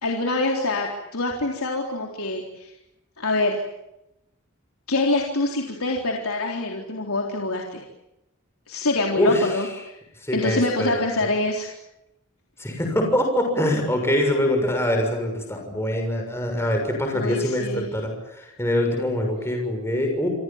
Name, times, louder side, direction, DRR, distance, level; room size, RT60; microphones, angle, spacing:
voice 1, 0.0-2.7 3.2-3.6 4.9-7.8 8.7-9.7 10.3-11.7 17.1-17.9, left 2 dB, 80° left, 0 dB, 3.9 m, -25 dB
voice 2, 10.2-10.9 12.6-20.3, left 1 dB, 10° left, 2 dB, 6.7 m, -24 dB
29.5 x 25.5 x 7.4 m, 0.90 s
head